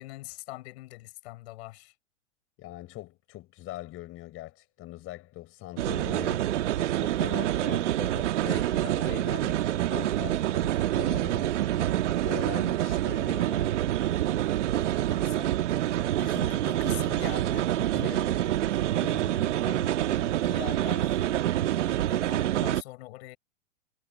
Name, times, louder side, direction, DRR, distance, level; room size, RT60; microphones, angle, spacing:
voice 1, 0.0-1.9 14.8-15.5 15.8-18.5 19.4-21.2 21.8-23.4, left 19 dB, 55° left, 6.9 m, -43 dB
voice 2, 2.6-13.9 17.9-18.2 18.9-19.4 21.8-22.2, left 16 dB, 35° left, 4.5 m, -42 dB
sound 1, 5.8-22.8, right 13 dB, 70° right, 1.5 m, -27 dB
hypercardioid pair, 110°, 38 cm